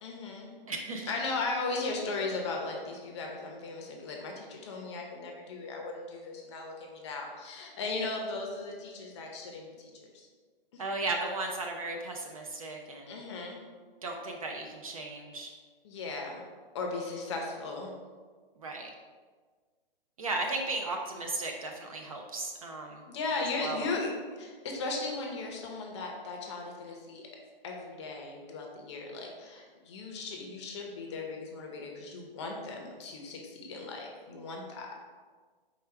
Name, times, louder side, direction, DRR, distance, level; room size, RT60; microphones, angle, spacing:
voice 1, 0.0-0.6 1.1-10.3 10.7-10.8 13.1-13.6 15.8-16.4 16.7-17.9 23.1-24.1 24.4-27.2 27.6-34.9, left 3 dB, 30° left, 0 dB, 0.7 m, -37 dB
voice 2, 0.7-1.1 10.8-13.2 14.0-15.5 18.6-18.9 20.2-23.0 23.6-23.9, right 2 dB, 40° right, 2 dB, 0.4 m, -35 dB
4.8 x 2.2 x 4.4 m, 1.5 s
hypercardioid pair, 155°, 29 cm